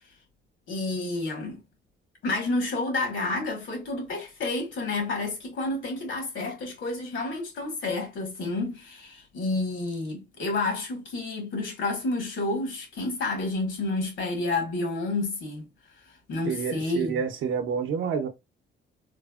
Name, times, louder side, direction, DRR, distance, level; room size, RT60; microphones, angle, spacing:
voice 1, 0.7-1.6 2.2-15.7 16.3-17.2, left 2 dB, 75° left, 1.4 m, -30 dB
voice 2, 16.4-18.3, right 6 dB, 80° right, 0.7 m, -28 dB
3.3 x 2.0 x 2.3 m
cardioid pair, 90°, 20 cm